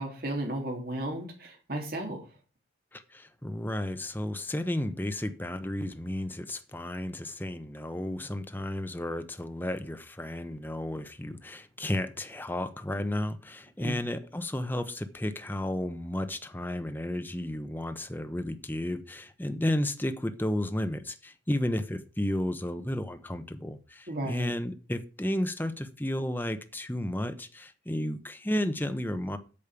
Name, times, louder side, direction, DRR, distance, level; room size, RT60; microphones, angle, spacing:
voice 1, 0.0-2.2 13.8-13.9 24.1-24.5, right 1 dB, 55° right, 3.4 m, -34 dB
voice 2, 2.9-29.4, left 1 dB, 10° left, 0.9 m, -33 dB
8.7 x 6.4 x 7.0 m
head